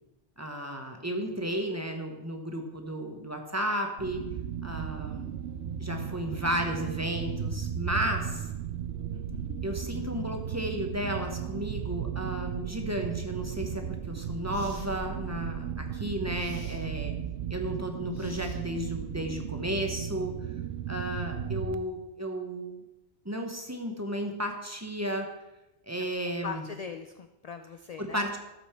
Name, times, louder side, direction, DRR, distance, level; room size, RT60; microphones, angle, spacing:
voice 1, 0.4-4.2 4.6-5.3 5.8-8.5 9.6-17.1 17.5-20.3 20.9-22.8 23.2-25.3 25.9-26.6 28.0-28.4, equal, 15° right, 3 dB, 1.0 m, -33 dB
sound 1, 4.0-21.7, right 8 dB, 70° right, 0.8 m, -35 dB
voice 2, 9.1-9.6 26.4-28.2, left 6 dB, 60° left, 7 dB, 0.4 m, -41 dB
sound 2, 13.7-13.8 14.5-14.9 16.3-16.8 18.1-18.9, left 1 dB, 30° left, 2.4 m, -53 dB
13.0 x 5.4 x 4.4 m, 1.0 s
omnidirectional pair, 1.2 m